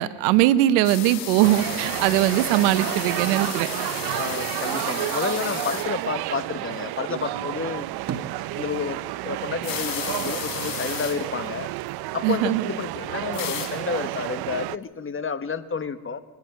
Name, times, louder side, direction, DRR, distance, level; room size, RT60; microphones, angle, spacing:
voice 1, 0.0-3.7 12.2-12.6, right 14 dB, 80° right, 15 dB, 1.0 m, -20 dB
sound 1, 0.8-6.1 6.4-6.5 9.6-11.2 11.5-11.6 11.8-11.9 13.3-13.7 14.1-14.2, left 9 dB, 85° left, 3.7 m, -33 dB
sound 2, 1.4-14.8, right 18 dB, 55° right, 0.6 m, -31 dB
voice 2, 4.1-7.8 8.2-8.3 8.5-9.0 9.2-11.7 12.1-16.2, left 5 dB, 25° left, 12 dB, 1.4 m, -30 dB
sound 3, 8.1-9.1 9.4-11.8 12.2-13.1, right 7 dB, 35° right, 1.7 m, -40 dB
26.0 x 10.5 x 9.4 m, 1.3 s
supercardioid pair, 80°, 46 cm